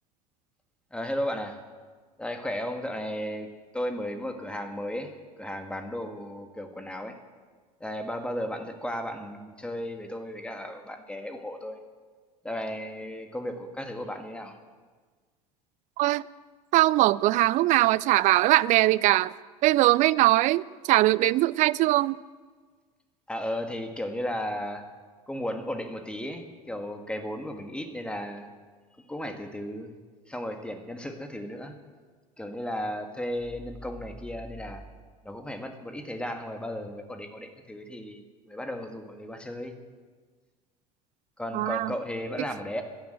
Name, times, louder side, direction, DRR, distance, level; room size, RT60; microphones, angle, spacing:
voice 1, 0.9-1.6 2.2-3.5 3.7-5.1 5.4-7.2 7.8-11.8 12.4-14.6 23.3-24.8 25.3-28.5 29.1-29.9 30.3-31.7 32.4-34.8 35.2-39.8 41.4-42.8, equal, 5° left, 1.8 m, -34 dB
voice 2, 16.7-19.3 19.6-22.2 41.5-41.9, right 17 dB, 40° right, 0.4 m, -21 dB
16.5 x 11.5 x 7.6 m
figure-of-eight pair, 70°, 20 cm